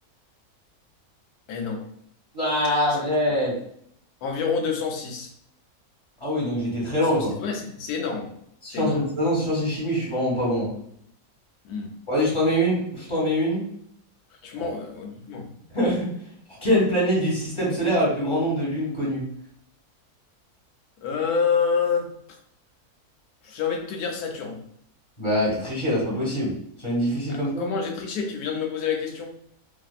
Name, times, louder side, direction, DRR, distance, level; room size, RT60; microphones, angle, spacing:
voice 1, 1.5-1.8 4.2-5.3 7.1-8.3 8.7-9.0 11.6-11.9 14.4-15.5 21.0-22.4 23.4-24.6 27.3-29.3, left 6 dB, 90° left, 3 dB, 1.2 m, -28 dB
voice 2, 2.3-3.6 6.2-7.3 8.6-10.7 12.1-13.6 14.6-14.8 15.7-16.1 16.5-19.2 25.2-26.5 26.8-27.6, equal, 20° left, -6 dB, 1.4 m, -24 dB
2.7 x 2.7 x 2.4 m, 0.70 s
omnidirectional pair, 1.6 m